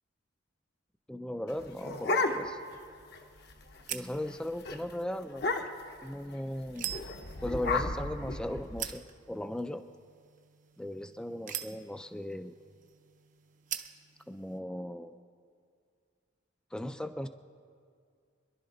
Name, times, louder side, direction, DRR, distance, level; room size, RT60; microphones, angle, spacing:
voice 1, 1.1-2.6 3.9-5.5 6.0-6.9 7.4-9.8 10.8-12.6 14.3-15.2 16.7-17.3, left 1 dB, 5° left, 9 dB, 0.3 m, -37 dB
sound 1, 1.5-2.8 3.1-3.2 3.5-3.8 4.1-4.3 4.7-4.8 5.3-6.0 6.8-8.9, left 3 dB, 55° left, 0.9 m, -33 dB
sound 2, 1.9-14.6, right 10 dB, 40° right, 0.6 m, -46 dB
26.5 x 11.0 x 3.9 m, 2.2 s
head